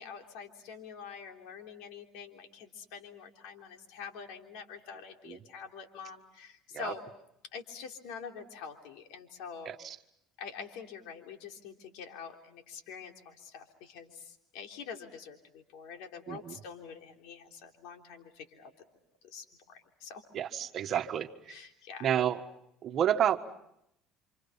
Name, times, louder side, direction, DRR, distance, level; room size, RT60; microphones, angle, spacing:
voice 1, 0.0-7.0 7.5-9.7 10.4-18.7 19.2-20.2 21.5-22.0, left 6 dB, 80° left, 3 dB, 3.4 m, -46 dB
voice 2, 9.6-10.0 16.3-16.6 20.3-21.6 22.0-22.4 22.8-23.4, right 10 dB, 50° right, 8 dB, 1.5 m, -30 dB
29.5 x 27.0 x 5.7 m, 0.78 s
cardioid pair, 110°, 0 cm